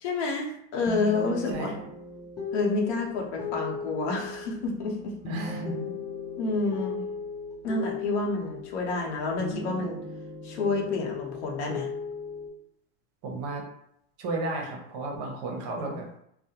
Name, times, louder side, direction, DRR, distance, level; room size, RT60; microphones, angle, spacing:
voice 1, 0.0-1.7 2.5-5.1 6.4-7.0 7.6-10.0 10.4-11.9, left 3 dB, 75° left, 0 dB, 0.8 m, -29 dB
sound 1, 0.9-9.1 9.4-12.5, left 5 dB, 10° left, 0.3 m, -37 dB
voice 2, 1.5-1.8 5.3-5.9 13.2-13.6 14.2-16.1, right 2 dB, 50° right, 1 dB, 0.7 m, -33 dB
2.4 x 2.1 x 2.8 m, 0.75 s
supercardioid pair, 130°, 34 cm